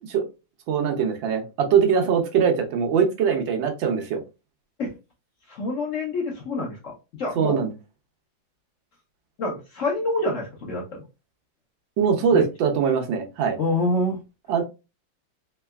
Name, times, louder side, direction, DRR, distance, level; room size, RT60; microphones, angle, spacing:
voice 1, 0.7-4.2 7.4-7.7 12.0-13.6 14.5-14.6, right 7 dB, 80° right, 4 dB, 1.5 m, -22 dB
voice 2, 5.5-6.9 7.2-7.6 9.4-11.0 12.3-12.4 13.6-14.2, left 2 dB, 55° left, -1 dB, 0.9 m, -26 dB
3.8 x 3.2 x 2.3 m, 0.28 s
omnidirectional pair, 2.1 m